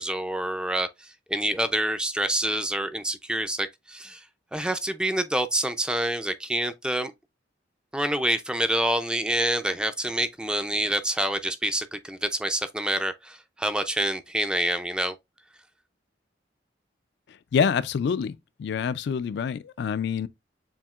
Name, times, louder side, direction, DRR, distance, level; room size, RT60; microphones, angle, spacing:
voice 1, 0.0-4.2 4.5-7.1 7.9-15.2, right 1 dB, 5° right, 0.4 m, -27 dB
voice 2, 17.5-20.3, left 6 dB, 65° left, 0.3 m, -26 dB
7.1 x 2.7 x 2.3 m
head